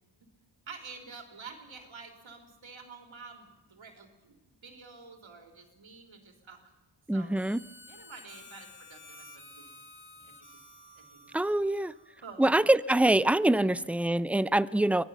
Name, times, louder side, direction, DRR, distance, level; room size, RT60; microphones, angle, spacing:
voice 1, 0.7-6.7 7.1-7.4 7.9-9.8 10.1-10.5 11.0-11.6 11.9-12.7 13.6-13.7, right 4 dB, 90° right, 4 dB, 4.0 m, -49 dB
voice 2, 7.1-7.6 11.3-11.9 12.4-15.0, right 1 dB, 5° right, 17 dB, 0.6 m, -24 dB
Harmonica, 7.3-12.5, left 2 dB, 25° left, 4.1 m, -52 dB
23.5 x 17.5 x 7.3 m, 1.1 s
wide cardioid pair, 70°, 46 cm